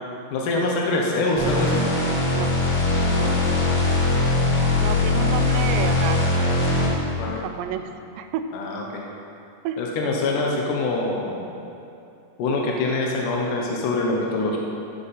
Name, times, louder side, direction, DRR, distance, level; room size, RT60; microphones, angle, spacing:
voice 1, 0.3-1.8 3.1-3.3 7.2-7.4 8.5-9.0 9.8-11.5 12.4-14.6, left 2 dB, 75° left, -1 dB, 1.9 m, -24 dB
sound 1, 1.4-7.1, left 2 dB, 50° left, 2.3 m, -21 dB
voice 2, 3.2-3.6 4.8-6.3 6.8-8.6 9.6-9.8, right 9 dB, 85° right, 8 dB, 2.8 m, -31 dB
16.0 x 5.8 x 4.1 m, 2.6 s
omnidirectional pair, 5.0 m